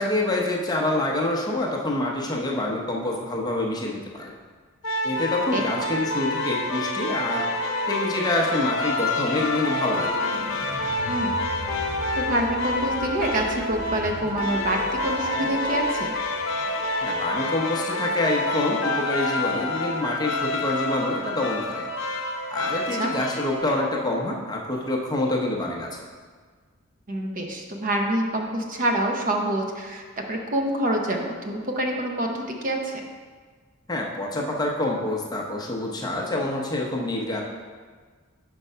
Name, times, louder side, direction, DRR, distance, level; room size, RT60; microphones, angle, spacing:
voice 1, 0.0-4.3 5.0-7.5 7.9-10.1 17.0-21.9 22.5-26.0 33.9-37.4, left 1 dB, 20° left, -1 dB, 0.7 m, -26 dB
sound 1, 4.8-23.7, left 2 dB, 70° left, 0.6 m, -28 dB
sound 2, 8.3-23.6, right 2 dB, 10° right, 1.2 m, -38 dB
sound 3, 9.0-19.0, equal, 80° right, 1.5 m, -39 dB
voice 2, 11.1-11.4 12.2-16.1 23.0-23.1 27.1-30.0 30.3-33.1, right 1 dB, 40° right, 2 dB, 0.7 m, -26 dB
5.1 x 4.6 x 5.5 m, 1.5 s
head